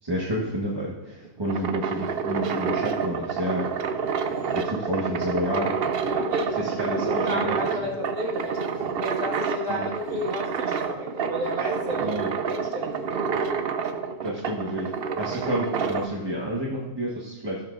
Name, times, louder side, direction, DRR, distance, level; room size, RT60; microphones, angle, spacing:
voice 1, 0.0-3.9 4.3-5.7 6.6-7.9 9.7-9.9 12.0-12.3 14.2-17.6, equal, 20° right, -4 dB, 1.1 m, -30 dB
sound 1, 1.2-16.1, right 6 dB, 55° right, 0.7 m, -28 dB
voice 2, 6.0-13.2, equal, 85° right, -3 dB, 2.2 m, -32 dB
15.0 x 7.4 x 2.5 m, 1.2 s
omnidirectional pair, 1.3 m